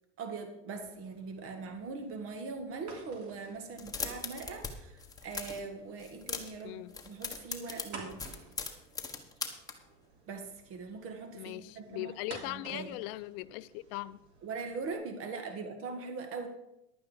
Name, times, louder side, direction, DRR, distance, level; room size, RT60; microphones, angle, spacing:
voice 1, 0.2-8.2 10.3-12.1 12.5-12.9 14.4-16.5, right 4 dB, 40° right, 1.8 m, -41 dB
sound 1, 0.8-14.9, right 3 dB, 80° right, 3.0 m, -53 dB
sound 2, 3.7-4.7 5.0-5.6 6.0-6.6 6.9-9.7, left 5 dB, 10° left, 1.4 m, -39 dB
voice 2, 11.4-14.2, left 17 dB, 60° left, 0.6 m, -40 dB
11.5 x 8.7 x 5.2 m
supercardioid pair, 125°, 32 cm